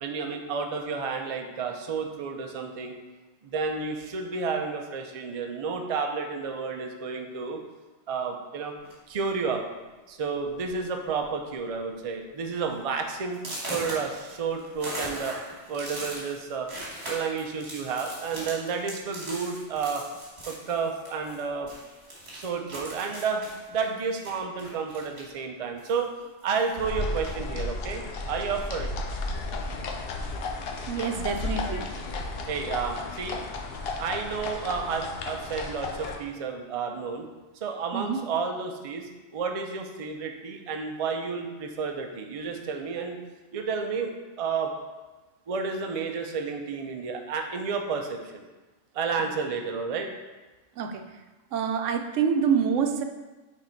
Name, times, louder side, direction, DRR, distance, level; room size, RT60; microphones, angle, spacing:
voice 1, 0.0-3.0 3.4-7.6 8.1-8.8 9.1-9.6 10.1-15.4 15.7-16.7 17.1-20.1 20.5-21.7 22.3-26.1 26.4-28.9 32.5-33.4 34.0-37.3 37.6-43.2 43.5-44.7 45.5-48.4 48.9-50.1, right 5 dB, 40° right, 4 dB, 0.5 m, -31 dB
sound 1, 8.8-9.2 10.0-10.1 10.5-10.7 11.0-11.5 11.9-12.0 12.5-12.6 13.3-21.4 21.7-25.4 25.8-26.8, right 1 dB, 60° right, 2.0 m, -40 dB
sound 2, 26.8-36.2, left 3 dB, 60° left, 0.8 m, -33 dB
voice 2, 30.9-31.9 37.9-38.3 50.8-51.0 51.5-53.0, right 7 dB, 85° right, 5 dB, 0.9 m, -26 dB
6.1 x 3.7 x 4.4 m, 1.2 s
omnidirectional pair, 1.2 m